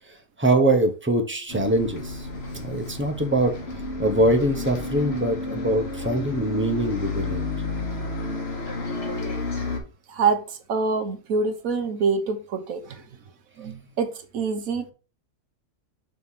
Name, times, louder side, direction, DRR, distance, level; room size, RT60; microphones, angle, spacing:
voice 1, 0.1-2.3 2.5-3.5 4.0-7.4, right 1 dB, 10° right, 5 dB, 0.5 m, -23 dB
Bus, 1.5-9.8, left 3 dB, 45° left, 1.4 m, -31 dB
voice 2, 10.1-10.4 10.7-13.0 13.6-14.1 14.3-14.9, right 4 dB, 65° right, 7 dB, 1.3 m, -25 dB
6.2 x 3.2 x 5.5 m, 0.34 s
omnidirectional pair, 1.6 m